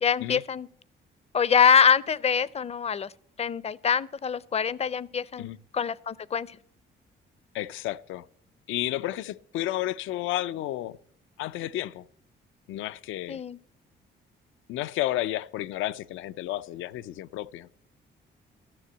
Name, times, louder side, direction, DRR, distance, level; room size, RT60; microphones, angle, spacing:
voice 1, 0.0-0.7 1.3-3.1 3.4-5.5 5.7-6.5 13.3-13.6, left 7 dB, 30° left, 0.5 m, -24 dB
voice 2, 7.5-8.2 8.7-11.0 11.4-12.1 12.7-13.4 14.7-17.7, left 14 dB, 85° left, 0.4 m, -32 dB
13.0 x 6.7 x 7.9 m
cardioid pair, 90°, 20 cm